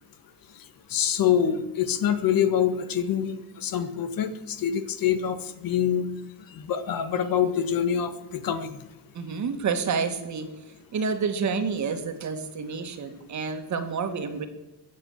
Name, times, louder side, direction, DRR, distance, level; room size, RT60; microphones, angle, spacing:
voice 1, 0.9-6.1 6.5-8.8, left 9 dB, 55° left, 10 dB, 1.6 m, -25 dB
voice 2, 9.1-10.5 10.9-14.5, right 5 dB, 45° right, 7 dB, 2.1 m, -29 dB
22.0 x 7.7 x 7.5 m, 1.0 s
cardioid pair, 140°, 42 cm